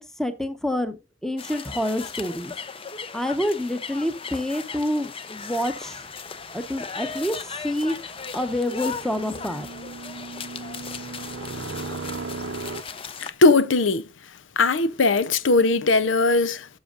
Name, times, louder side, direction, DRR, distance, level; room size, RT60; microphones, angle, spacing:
voice 1, 0.0-2.5 3.1-6.1 6.5-8.0 8.3-9.7, left 1 dB, ahead, 0.9 m, -27 dB
sound 1, 1.4-13.3, left 5 dB, 30° left, 0.7 m, -37 dB
sound 2, 5.4-12.8, right 3 dB, 80° right, 0.7 m, -38 dB
voice 2, 13.2-14.0 14.6-16.7, left 3 dB, 85° left, 0.7 m, -19 dB
12.5 x 6.3 x 2.5 m
head